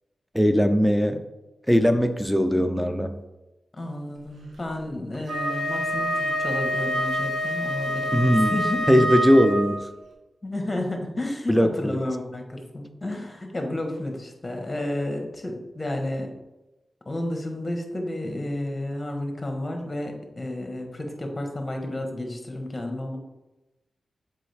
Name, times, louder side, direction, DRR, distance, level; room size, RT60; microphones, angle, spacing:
voice 1, 0.3-1.2 1.7-3.2 8.1-8.6 8.9-9.8 11.5-12.0, equal, ahead, 8 dB, 0.7 m, -20 dB
voice 2, 3.7-8.8 10.4-16.3 17.0-23.2, left 1 dB, 30° left, 3 dB, 1.5 m, -31 dB
Wind instrument woodwind instrument, 5.2-9.8, equal, 90° right, 1.3 m, -27 dB
7.5 x 4.7 x 3.6 m, 1.0 s
cardioid pair, 60°, 0 cm